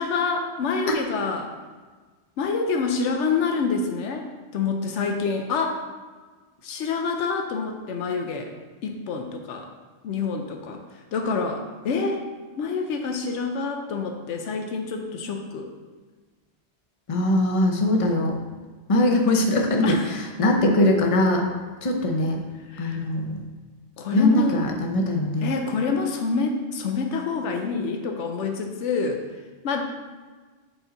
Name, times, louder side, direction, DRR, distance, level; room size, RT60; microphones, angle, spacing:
voice 1, 0.0-1.5 2.4-5.8 6.6-8.5 8.8-9.7 10.0-12.2 12.6-15.7 19.8-20.2 22.7-23.1 24.0-24.6 25.4-29.2 29.6-29.8, left 4 dB, 90° left, 4 dB, 1.0 m, -27 dB
voice 2, 17.1-18.4 18.9-21.5 21.8-22.4 22.8-23.5 24.1-25.5, left 1 dB, 35° left, 2 dB, 0.7 m, -21 dB
7.8 x 4.0 x 3.9 m, 1.4 s
omnidirectional pair, 1.2 m